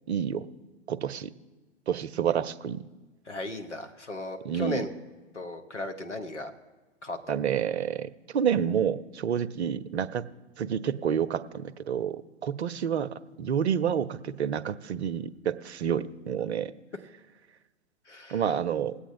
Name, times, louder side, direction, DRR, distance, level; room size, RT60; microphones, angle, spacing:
voice 1, 0.1-0.5 0.9-1.3 1.9-2.8 4.4-4.8 7.3-10.2 10.6-16.7 18.3-19.0, right 8 dB, 65° right, 16 dB, 0.7 m, -29 dB
voice 2, 3.2-4.9 5.3-6.5 7.0-7.3 18.0-18.5, left 2 dB, 85° left, 6 dB, 1.4 m, -36 dB
20.5 x 8.4 x 3.8 m, 1.2 s
figure-of-eight pair, 105°, 35 cm